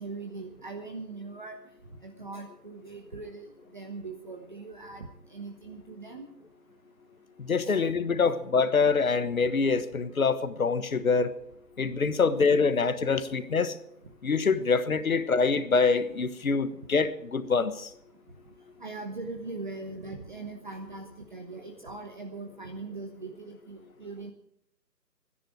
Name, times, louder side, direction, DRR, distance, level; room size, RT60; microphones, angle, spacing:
voice 1, 0.0-1.6 2.0-3.5 3.7-6.3 7.6-7.8 12.4-12.5 14.6-14.7 18.8-24.3, right 3 dB, 30° right, 4 dB, 1.0 m, -40 dB
voice 2, 7.4-11.3 11.8-13.7 14.2-17.9, left 4 dB, 55° left, 12 dB, 1.4 m, -25 dB
24.5 x 10.5 x 4.8 m, 0.74 s
figure-of-eight pair, 160°, 49 cm